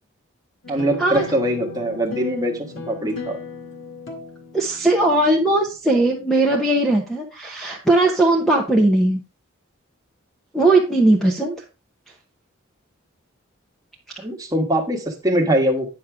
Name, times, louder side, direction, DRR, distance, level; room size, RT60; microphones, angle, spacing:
sound 1, 0.6-5.7, left 3 dB, 65° left, 1.9 m, -36 dB
voice 1, 0.7-3.4 14.2-15.9, right 1 dB, 15° right, 2 dB, 1.4 m, -22 dB
voice 2, 4.5-9.2 10.5-11.5, right 2 dB, ahead, 0 dB, 0.9 m, -18 dB
8.9 x 6.5 x 3.5 m, 0.29 s
head